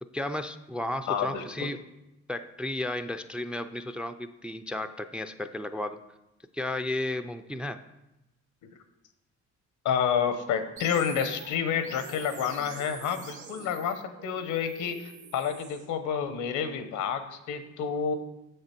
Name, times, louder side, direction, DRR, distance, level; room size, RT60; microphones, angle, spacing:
voice 1, 0.1-1.8 2.3-6.0 6.5-7.8, left 1 dB, 5° right, 10 dB, 0.3 m, -33 dB
voice 2, 1.1-1.7 9.8-18.2, left 7 dB, 85° left, 9 dB, 0.8 m, -29 dB
sound 1, 10.8-15.8, right 5 dB, 75° right, 1.6 m, -46 dB
6.8 x 6.7 x 4.3 m, 0.94 s
cardioid pair, 90°, 30 cm